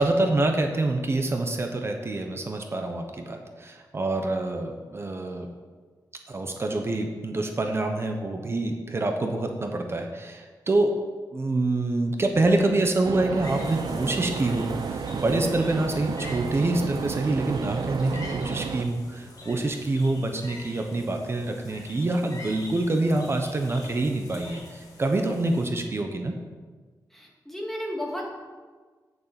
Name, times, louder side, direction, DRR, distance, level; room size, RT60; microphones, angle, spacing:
voice 1, 0.0-5.5 6.3-10.9 11.3-26.3, right 2 dB, 35° right, 4 dB, 1.0 m, -26 dB
sound 1, 13.0-18.8, right 5 dB, 80° right, 0.6 m, -32 dB
sound 2, 13.4-25.7, left 2 dB, 60° left, 2.9 m, -44 dB
voice 2, 27.1-28.4, equal, 5° left, -2 dB, 2.1 m, -33 dB
8.4 x 7.0 x 8.1 m, 1.4 s
wide cardioid pair, 150°, 7 cm